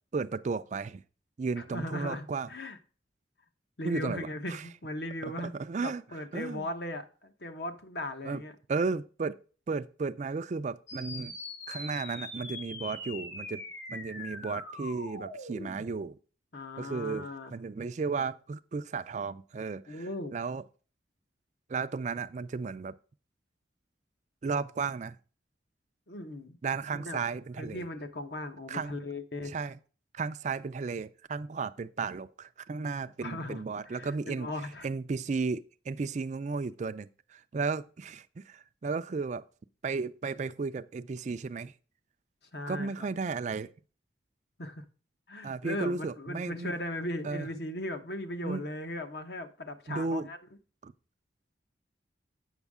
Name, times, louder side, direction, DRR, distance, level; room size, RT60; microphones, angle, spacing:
voice 1, 0.1-1.0 1.4-2.5 3.8-4.6 5.2-6.7 8.2-8.4 8.7-9.4 9.7-11.4 11.7-13.6 13.9-16.2 16.8-20.6 21.7-22.9 24.4-25.2 26.6-27.9 28.7-29.0 29.5-29.8 30.1-34.5 34.8-39.5 39.8-41.7 42.7-43.7 45.4-46.7 47.2-47.5 48.4-48.6 49.9-50.3 50.8-50.9, right 4 dB, 40° right, 0.4 m, -34 dB
voice 2, 1.6-2.8 3.8-5.5 5.8-8.5 16.5-17.5 19.9-20.3 26.1-26.6 26.9-27.2 27.6-29.5 33.2-34.9 42.5-43.1 44.6-44.8 45.3-50.4, left 1 dB, 60° left, 1.1 m, -38 dB
sound 1, 10.9-15.9, left 2 dB, 85° left, 2.1 m, -42 dB
8.1 x 6.3 x 3.6 m
head